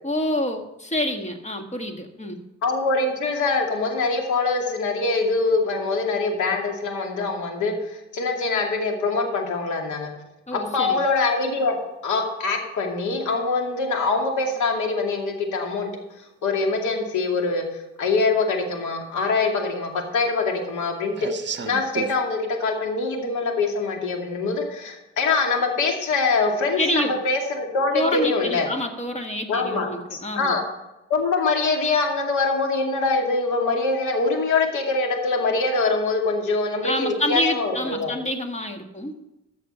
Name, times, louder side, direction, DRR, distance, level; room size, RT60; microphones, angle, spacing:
voice 1, 0.0-2.4 10.5-11.0 26.8-27.2 27.9-30.6 36.8-39.2, left 1 dB, 25° left, 5 dB, 1.7 m, -27 dB
voice 2, 2.6-10.1 10.5-11.7 12.0-15.9 16.4-17.6 18.0-21.3 21.6-28.7 29.5-30.6 31.1-38.1, left 3 dB, 75° left, 2 dB, 2.5 m, -24 dB
sound 1, 15.6-15.7 17.0-17.1 17.6-17.7 17.9-18.6 18.9-22.2, right 6 dB, 35° right, 1.0 m, -35 dB
14.5 x 6.5 x 5.7 m, 0.94 s
cardioid pair, 90°, 30 cm